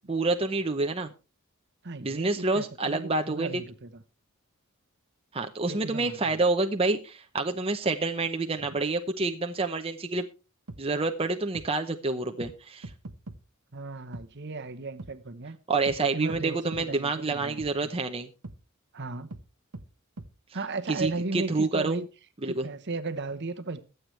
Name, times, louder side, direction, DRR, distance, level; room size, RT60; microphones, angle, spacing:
voice 1, 0.1-1.1 2.0-3.6 5.3-10.3 10.8-12.9 15.7-18.3 20.9-22.0 22.4-22.7, right 3 dB, 25° right, 0.8 m, -28 dB
voice 2, 1.8-4.0 5.7-6.4 8.6-8.8 13.7-15.6 16.1-17.9 18.9-19.3 20.5-22.1 22.4-23.8, right 3 dB, 50° right, 1.1 m, -36 dB
sound 1, 10.7-10.8 11.5-11.7 12.4-12.5 12.8-13.4 14.1-14.3 15.0-15.1 15.9-16.0 16.3-16.4 16.7-16.9 17.6-17.7 18.4-18.6 19.3-19.4 19.7-19.9 20.2-20.3 21.0-21.1, right 2 dB, 90° right, 1.1 m, -41 dB
22.0 x 8.0 x 3.3 m
head